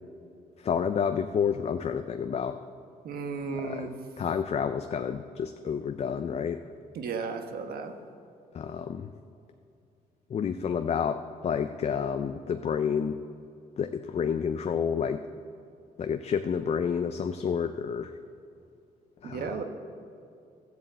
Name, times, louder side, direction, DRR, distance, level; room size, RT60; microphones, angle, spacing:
voice 1, 0.6-2.6 3.5-3.9 4.2-6.6 8.5-9.1 10.3-13.2 13.8-15.2 16.0-18.2 19.2-19.5, left 7 dB, 40° left, 8 dB, 0.5 m, -29 dB
voice 2, 3.0-3.9 6.9-7.9 19.2-19.6, right 5 dB, 70° right, 6 dB, 1.2 m, -34 dB
12.5 x 7.5 x 8.1 m, 2.5 s
cardioid pair, 100°, 16 cm